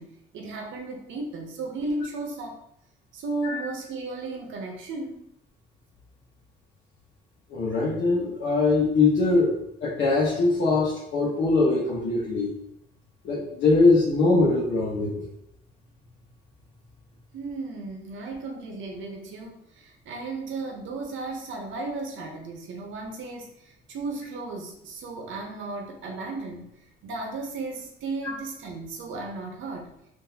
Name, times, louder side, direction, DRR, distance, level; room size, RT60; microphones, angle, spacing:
voice 1, 0.0-2.6 3.1-5.3 17.3-26.7 27.0-29.9, right 3 dB, 75° right, 2 dB, 0.8 m, -35 dB
voice 2, 7.5-12.5 13.2-15.3, left 3 dB, 70° left, -7 dB, 1.0 m, -22 dB
3.8 x 2.6 x 2.8 m, 0.78 s
cardioid pair, 90°, 20 cm